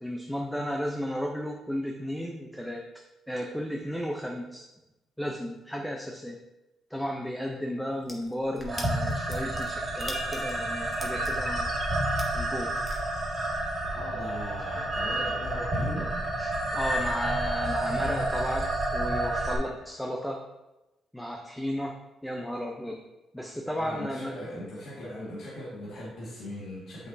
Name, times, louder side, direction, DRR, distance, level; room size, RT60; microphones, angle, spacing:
voice 1, 0.0-4.7 5.2-6.4 6.9-11.7 12.3-12.7 16.1-20.4 21.1-23.0 23.3-24.4, equal, 5° left, 1 dB, 0.6 m, -34 dB
sound 1, 7.9-13.0, left 1 dB, 20° left, 1.4 m, -42 dB
sound 2, 8.7-19.6, right 1 dB, 30° right, 2.0 m, -30 dB
voice 2, 13.9-16.2 17.9-18.2 23.8-27.1, equal, 70° left, -7 dB, 1.9 m, -39 dB
7.7 x 5.9 x 2.7 m, 1.0 s
cardioid pair, 90°, 0 cm